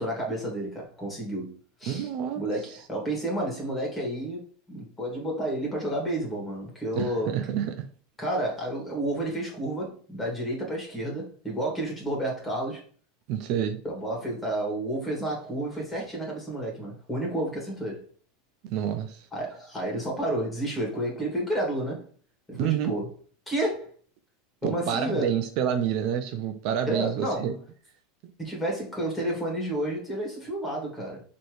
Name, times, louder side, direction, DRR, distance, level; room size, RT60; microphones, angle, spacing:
voice 1, 0.0-2.1 2.4-7.3 8.2-12.8 13.8-18.0 19.3-22.1 22.5-23.1 23.5-23.9 24.6-25.3 26.9-27.5 28.4-31.2, right 1 dB, 10° left, 2.2 m, -31 dB
voice 2, 1.9-2.4 7.0-7.9 13.3-13.8 18.7-19.3 22.5-23.0 24.6-27.5, right 9 dB, 55° right, 0.5 m, -28 dB
4.3 x 3.1 x 3.1 m
supercardioid pair, 125°, 0 cm